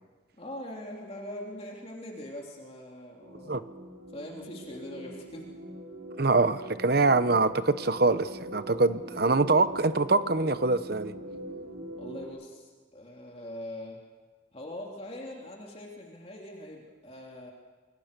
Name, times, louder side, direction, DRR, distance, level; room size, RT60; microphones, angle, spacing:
voice 1, 0.4-3.6 4.1-5.5 9.1-9.2 12.0-14.0 14.5-17.5, left 1 dB, 30° left, -1 dB, 3.2 m, -42 dB
sound 1, 3.2-12.3, right 1 dB, 80° right, 6.5 m, -42 dB
voice 2, 6.2-11.1, right 3 dB, 50° right, 12 dB, 1.0 m, -24 dB
28.5 x 22.5 x 6.9 m, 1.3 s
head